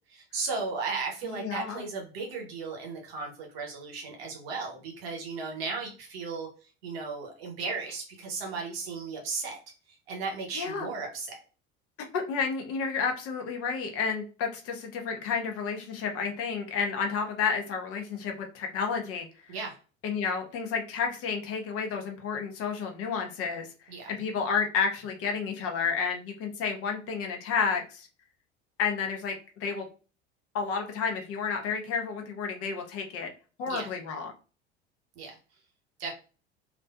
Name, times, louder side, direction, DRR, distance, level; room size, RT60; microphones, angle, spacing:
voice 1, 0.1-6.5 6.8-9.6 10.1-11.3 19.5-19.7 23.9-24.1 33.7-33.9 35.2-35.3 36.0-36.1, right 4 dB, 65° right, 1 dB, 1.0 m, -35 dB
voice 2, 1.2-1.8 10.5-10.9 12.1-19.6 20.0-23.7 24.1-28.1 28.8-29.9 30.5-33.3 33.6-34.3, left 5 dB, 45° left, 3 dB, 0.7 m, -31 dB
2.5 x 2.2 x 2.3 m, 0.35 s
figure-of-eight pair, 70°, 33 cm